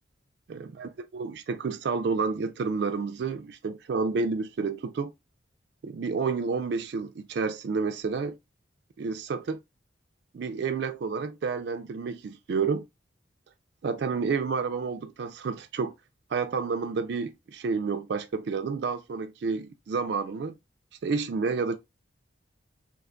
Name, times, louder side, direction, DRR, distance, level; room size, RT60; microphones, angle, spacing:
voice 1, 0.5-5.1 5.8-8.4 9.0-9.6 10.3-12.9 13.8-15.9 16.3-20.5 21.0-21.8, right 5 dB, 60° right, 0.3 m, -30 dB
3.1 x 2.2 x 3.6 m
head